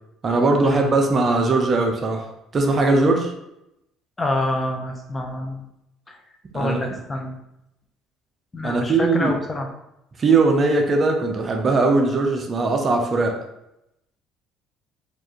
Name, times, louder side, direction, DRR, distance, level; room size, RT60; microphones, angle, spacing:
voice 1, 0.2-2.3 2.5-3.3 6.5-7.0 8.6-9.4 10.2-13.4, right 3 dB, 35° right, 3 dB, 0.6 m, -20 dB
voice 2, 4.2-5.6 6.1-6.2 6.5-7.4 8.5-9.7, left 2 dB, 20° left, 3 dB, 0.6 m, -26 dB
4.4 x 2.6 x 3.0 m, 0.85 s
cardioid pair, 115°, 0 cm